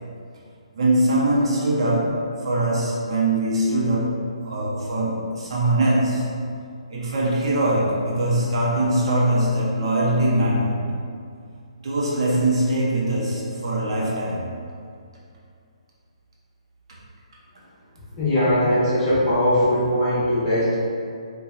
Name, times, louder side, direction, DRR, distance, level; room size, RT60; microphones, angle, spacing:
voice 1, 0.7-6.3 6.9-10.8 11.8-14.5, right 1 dB, 50° right, -5 dB, 0.6 m, -22 dB
voice 2, 18.2-20.7, left 1 dB, 25° left, -13 dB, 1.0 m, -20 dB
2.7 x 2.2 x 2.4 m, 2.3 s
figure-of-eight pair, 135°, 3 cm